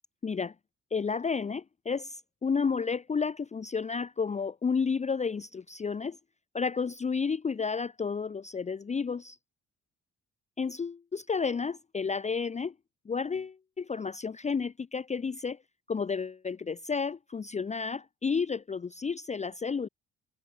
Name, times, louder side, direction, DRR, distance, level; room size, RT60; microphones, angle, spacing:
voice 1, 0.2-0.5 0.9-6.2 6.5-9.4 10.6-12.7 13.1-15.6 15.9-19.9, left 5 dB, 25° left, 0.6 m, -31 dB
cardioid pair, 90°, 30 cm